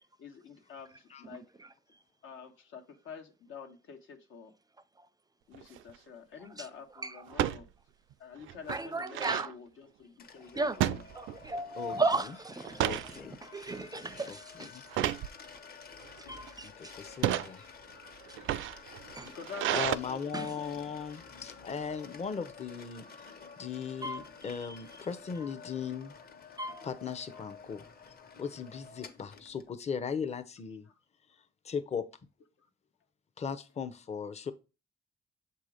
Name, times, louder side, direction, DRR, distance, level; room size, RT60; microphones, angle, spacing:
voice 1, 0.2-1.4 2.2-4.5 5.5-7.7 8.2-11.0 11.6-11.8 13.0-13.2 19.2-20.2 20.6-20.8 23.3-23.5 32.6-32.7, left 6 dB, 80° left, 1.4 m, -48 dB
sound 1, 5.5-5.9 7.3-7.6 8.1-8.2 8.5-9.5 10.8-11.6 11.9-12.2 12.6-13.1 13.7-14.0 14.9-15.3 16.0-16.5 17.1-17.5 18.3-20.0, right 13 dB, 80° right, 0.4 m, -31 dB
voice 2, 7.0-7.5 8.7-9.5 10.6-10.8 11.2-14.7 16.3-16.9 19.1-19.3 20.3-20.5 24.0-24.8 26.6-26.9, right 3 dB, 20° right, 0.4 m, -35 dB
sound 2, 10.2-29.7, left 5 dB, 50° left, 1.2 m, -51 dB
voice 3, 12.8-13.4 14.3-14.8 16.6-17.7 19.7-23.3 23.6-26.1 26.8-27.8 28.4-30.9 31.6-32.1 33.4-34.5, left 6 dB, 35° left, 0.7 m, -38 dB
7.3 x 2.8 x 4.9 m
cardioid pair, 90°, 20 cm